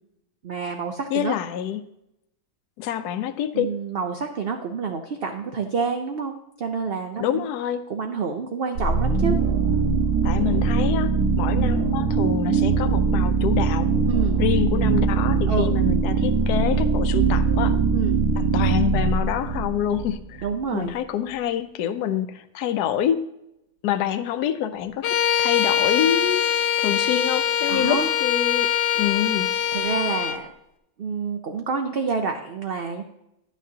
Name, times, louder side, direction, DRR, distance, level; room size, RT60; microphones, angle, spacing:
voice 1, 0.4-1.4 3.5-7.5 7.9-9.4 14.1-14.4 15.5-15.7 17.9-18.2 20.4-20.9 27.7-28.1 29.7-30.5 31.0-33.0, right 5 dB, 60° right, 5 dB, 0.6 m, -28 dB
voice 2, 1.1-1.8 2.8-3.7 7.2-7.8 10.2-11.1 11.4-13.9 14.4-17.8 18.5-20.5 20.7-23.2 23.8-26.4 26.8-28.7 28.9-29.5, left 10 dB, 85° left, 11 dB, 1.2 m, -26 dB
sound 1, 8.8-20.5, right 5 dB, 85° right, 1.5 m, -21 dB
Bowed string instrument, 25.0-30.4, left 9 dB, 65° left, 0.8 m, -23 dB
11.0 x 9.2 x 2.8 m, 0.85 s
omnidirectional pair, 1.7 m